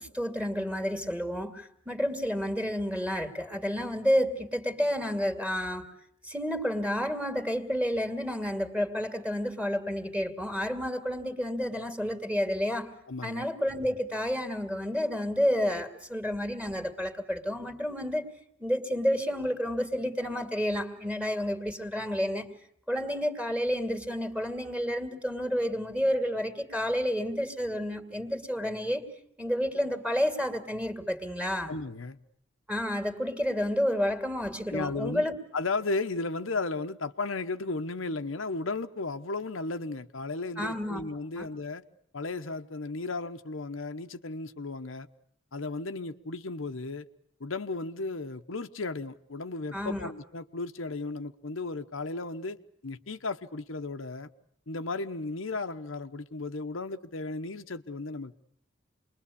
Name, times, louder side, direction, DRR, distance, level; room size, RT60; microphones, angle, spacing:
voice 1, 0.0-5.8 6.2-12.9 13.2-18.3 18.6-22.5 22.9-29.0 29.4-31.7 32.7-35.4 40.6-41.0 41.4-41.5 49.7-50.1, equal, 5° right, 2.4 m, -30 dB
voice 2, 13.1-13.5 31.7-32.2 34.7-35.2 35.5-41.8 42.1-45.1 45.5-47.1 47.4-52.6 52.8-54.3 54.7-58.4, left 3 dB, 80° left, 1.0 m, -35 dB
28.0 x 21.5 x 8.5 m
head